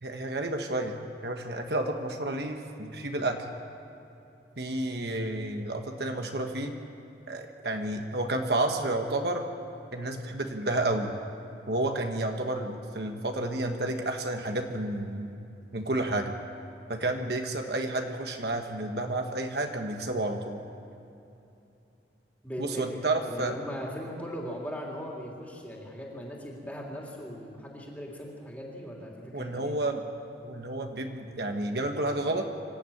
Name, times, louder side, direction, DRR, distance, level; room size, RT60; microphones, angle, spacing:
voice 1, 0.0-3.4 4.6-6.7 7.3-9.5 9.9-11.2 11.7-15.3 15.7-16.3 16.9-20.6 22.6-23.5 29.3-30.0 30.4-32.5, right 2 dB, 60° right, 4 dB, 1.4 m, -30 dB
voice 2, 22.4-29.8, equal, 10° left, -3 dB, 3.2 m, -39 dB
26.0 x 12.5 x 8.7 m, 2.8 s
head